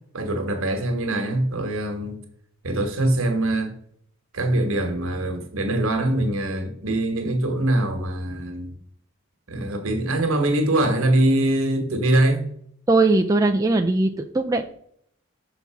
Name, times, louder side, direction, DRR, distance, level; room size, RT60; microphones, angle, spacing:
voice 1, 0.1-2.2 2.6-3.7 4.3-8.8 9.5-12.4, right 1 dB, 75° right, 1.3 m, -23 dB
voice 2, 12.9-14.7, right 2 dB, 15° right, 0.3 m, -20 dB
6.0 x 4.0 x 5.7 m
head